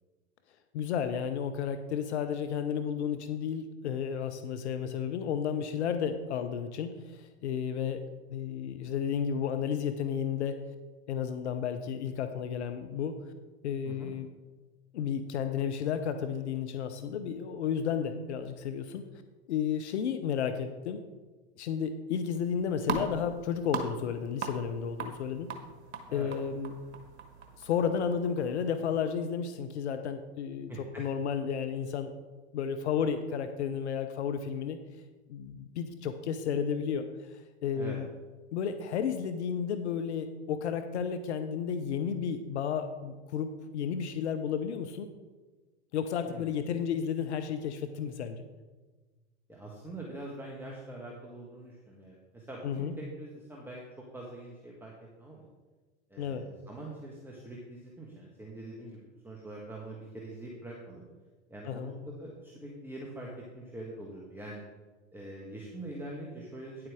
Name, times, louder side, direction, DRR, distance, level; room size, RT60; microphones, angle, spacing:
voice 1, 0.7-8.0 8.3-10.6 11.1-13.2 13.6-14.3 14.9-19.1 19.5-21.0 21.6-25.5 26.1-26.7 27.6-30.7 31.0-32.1 32.5-34.8 35.3-38.1 38.5-45.1 45.9-48.4 52.6-52.9 56.2-56.5 61.7-61.9, left 7 dB, 75° left, 9 dB, 0.7 m, -32 dB
sound 1, 22.3-29.0, right 5 dB, 80° right, 1.3 m, -41 dB
voice 2, 30.7-31.1 37.7-38.0 46.3-46.5 49.5-53.8 54.1-54.9 55.2-55.4 56.1-61.0 61.5-63.3 63.5-64.6 65.1-66.9, right 2 dB, 5° right, -2 dB, 1.5 m, -44 dB
10.0 x 7.8 x 3.6 m, 1.3 s
hypercardioid pair, 90°, 34 cm